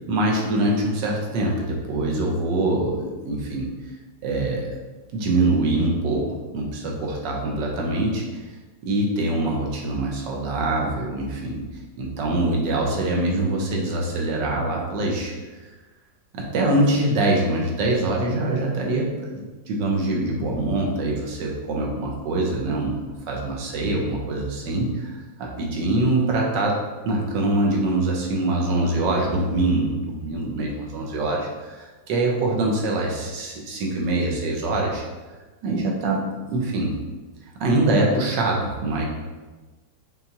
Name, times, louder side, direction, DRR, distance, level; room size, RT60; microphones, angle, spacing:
voice 1, 0.1-3.7 4.2-4.7 5.1-8.4 8.8-11.6 12.0-15.3 16.3-26.8 27.0-35.0 35.6-36.2 36.5-36.9 37.6-39.1, right 2 dB, 75° right, -1 dB, 1.3 m, -24 dB
5.5 x 2.3 x 2.7 m, 1.2 s
omnidirectional pair, 2.0 m